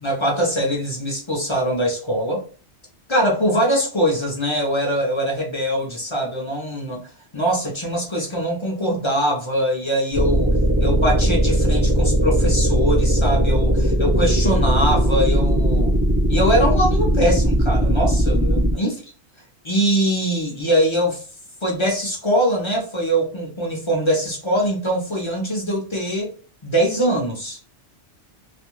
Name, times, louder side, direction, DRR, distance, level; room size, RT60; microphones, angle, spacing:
voice 1, 0.0-2.4 3.1-10.5 10.8-16.0 16.3-19.0 19.6-21.2 21.6-26.3 26.6-27.6, equal, 35° left, -1 dB, 0.5 m, -22 dB
sound 1, 10.1-18.7, right 1 dB, 15° right, 0.6 m, -18 dB
2.4 x 2.2 x 2.9 m, 0.37 s
omnidirectional pair, 1.2 m